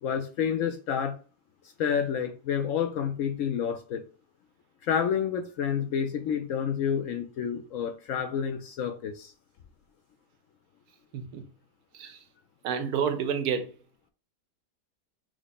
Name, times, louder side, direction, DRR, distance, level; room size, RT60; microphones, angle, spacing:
voice 1, 0.0-1.2 1.8-4.0 4.8-9.3, left 7 dB, 70° left, 0.8 m, -29 dB
voice 2, 11.1-11.4 11.9-12.2 12.6-13.7, right 7 dB, 75° right, 1.2 m, -29 dB
6.1 x 2.1 x 4.0 m
omnidirectional pair, 1.7 m